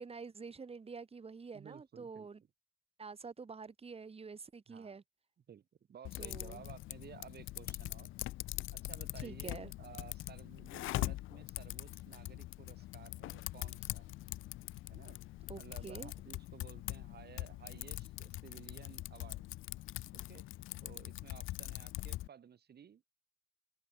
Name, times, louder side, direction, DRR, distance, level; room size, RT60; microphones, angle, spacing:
voice 1, 0.0-2.4 3.0-5.0 6.2-6.6 9.2-9.7 15.5-16.1, right 5 dB, 30° right, 1.9 m, -47 dB
voice 2, 1.5-2.3 4.7-5.0 5.5-8.1 8.7-14.1 14.9-15.2 15.6-19.5 20.1-20.4 20.8-23.1, right 8 dB, 55° right, 4.6 m, -55 dB
Typing, 6.0-22.3, left 17 dB, 85° left, 0.9 m, -43 dB
cardioid pair, 90°, 20 cm